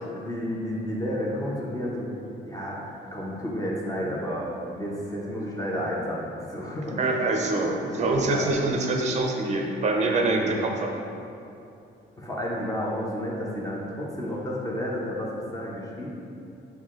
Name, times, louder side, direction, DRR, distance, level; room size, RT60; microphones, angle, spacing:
voice 1, 0.0-2.1 2.4-2.8 3.1-7.0 7.8-7.9 8.3-8.5 10.2-10.6 12.2-16.1, equal, 15° left, -4 dB, 0.6 m, -31 dB
voice 2, 7.0-10.9, right 2 dB, 35° right, 2 dB, 0.5 m, -25 dB
5.7 x 2.2 x 2.4 m, 2.6 s
cardioid pair, 90°, 20 cm